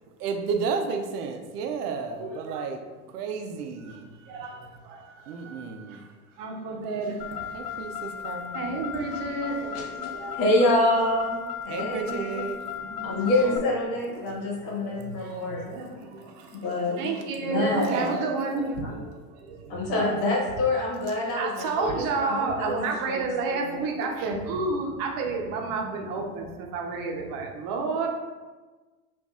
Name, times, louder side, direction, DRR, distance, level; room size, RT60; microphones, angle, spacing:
voice 1, 0.2-2.8 3.1-4.1 5.3-6.0 7.5-8.8 11.7-12.6 17.8-18.2 19.7-19.9, right 5 dB, 85° right, 5 dB, 0.6 m, -32 dB
voice 2, 2.2-2.7 3.8-6.1 6.4-7.8 8.5-10.4 12.7-13.6 14.8-16.6 17.0-20.3 21.4-28.1, right 3 dB, 45° right, 1 dB, 0.8 m, -31 dB
Car, 7.2-13.6, left 8 dB, 40° left, 0.4 m, -36 dB
voice 3, 9.7-12.4 13.0-15.6 16.5-17.1 17.4-17.9 19.7-23.8, left 2 dB, 60° left, -2 dB, 1.5 m, -27 dB
5.3 x 2.6 x 2.4 m, 1.3 s
hypercardioid pair, 105°, 46 cm